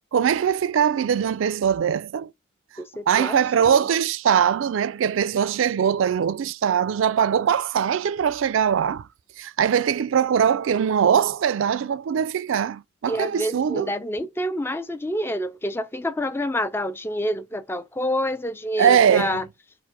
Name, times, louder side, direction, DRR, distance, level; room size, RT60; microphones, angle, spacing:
voice 1, 0.1-2.3 3.1-9.1 9.4-13.9 18.8-19.4, right 8 dB, 75° right, 0.3 m, -21 dB
voice 2, 2.8-3.8 13.0-19.5, equal, 10° left, 0.3 m, -28 dB
4.7 x 2.1 x 4.7 m
head